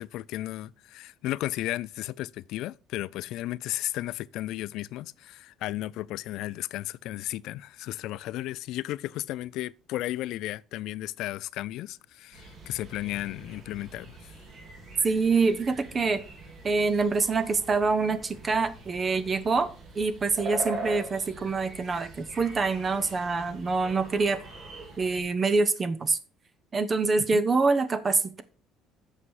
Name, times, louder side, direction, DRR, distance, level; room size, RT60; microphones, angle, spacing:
voice 1, 0.0-14.2 27.2-27.4, left 15 dB, 75° left, 0.3 m, -34 dB
sound 1, 12.3-25.2, right 2 dB, 55° right, 3.3 m, -42 dB
voice 2, 15.0-16.2 16.6-19.7 20.0-24.4 25.0-26.2 26.7-28.4, right 4 dB, 30° right, 0.8 m, -25 dB
8.4 x 5.5 x 4.7 m
cardioid pair, 105°, 0 cm